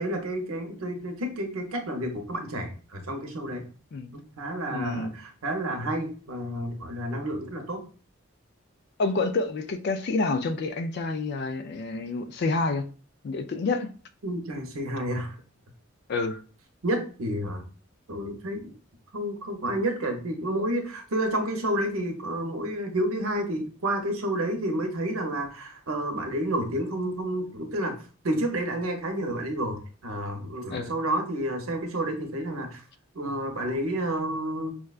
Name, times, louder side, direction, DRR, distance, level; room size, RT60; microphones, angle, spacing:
voice 1, 0.0-3.6 4.1-7.8 14.2-15.3 16.8-17.6 18.1-18.7 19.1-28.0 28.2-32.8 33.1-34.7, right 1 dB, 85° right, 0.8 m, -30 dB
voice 2, 4.7-5.1 9.0-12.9 13.2-13.9 16.1-16.4 30.7-30.9, left 3 dB, 50° left, 0.3 m, -28 dB
4.6 x 2.2 x 2.3 m
head